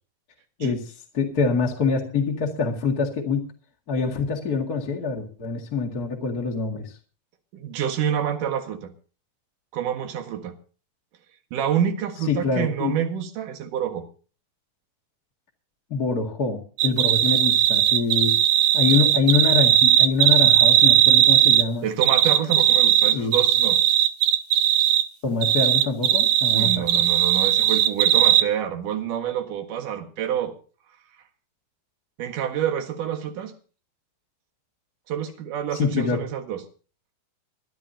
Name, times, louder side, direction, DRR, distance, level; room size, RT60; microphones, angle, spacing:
voice 1, 0.6-3.5 3.9-7.0 12.3-13.0 15.9-18.4 18.7-21.9 23.1-23.3 25.2-26.8 35.8-36.2, left 5 dB, 35° left, 0 dB, 1.7 m, -25 dB
voice 2, 7.5-8.9 9.7-10.5 11.5-14.0 21.8-23.8 26.5-30.6 32.2-33.5 35.1-36.6, right 9 dB, 65° right, 6 dB, 3.0 m, -27 dB
sound 1, 16.8-21.7 22.0-25.0 25.4-28.4, right 12 dB, 85° right, 2.7 m, -18 dB
23.0 x 12.5 x 2.8 m, 0.37 s
omnidirectional pair, 4.3 m